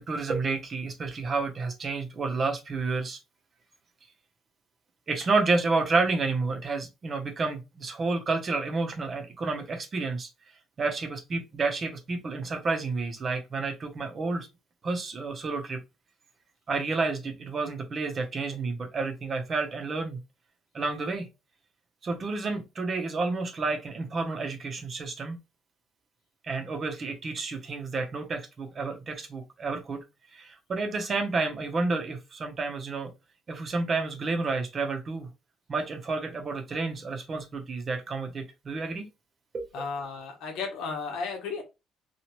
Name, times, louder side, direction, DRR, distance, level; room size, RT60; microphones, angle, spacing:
voice 1, 0.0-3.2 5.1-10.3 10.8-14.5 14.8-15.8 16.7-20.2 20.7-21.3 22.0-25.4 26.4-30.0 30.3-33.1 33.5-35.3 35.7-39.1 39.5-39.7, right 3 dB, 35° right, 0.7 m, -30 dB
voice 2, 39.7-41.6, left 5 dB, 80° left, 1.0 m, -34 dB
2.9 x 2.4 x 3.0 m
cardioid pair, 125°, 0 cm